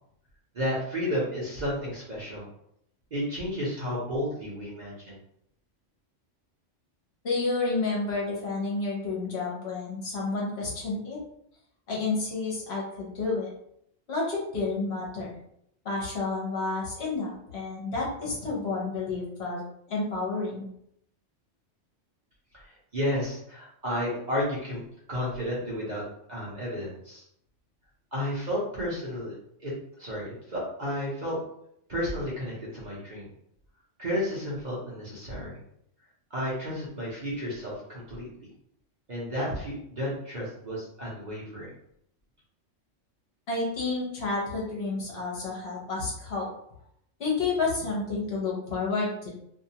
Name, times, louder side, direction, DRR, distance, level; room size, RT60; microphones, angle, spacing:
voice 1, 0.5-2.5 3.1-5.2 22.5-24.8 25.1-26.0 26.3-27.2 28.1-29.3 29.6-29.7 30.0-31.4 31.9-33.3 34.0-35.6 36.3-38.3 39.1-41.7, equal, 40° right, -6 dB, 0.8 m, -32 dB
voice 2, 7.2-11.2 11.9-13.5 14.1-15.3 15.8-19.6 19.9-20.7 43.5-46.5 47.2-49.3, left 3 dB, 60° left, -4 dB, 1.0 m, -30 dB
2.6 x 2.3 x 2.7 m, 0.72 s
omnidirectional pair, 1.3 m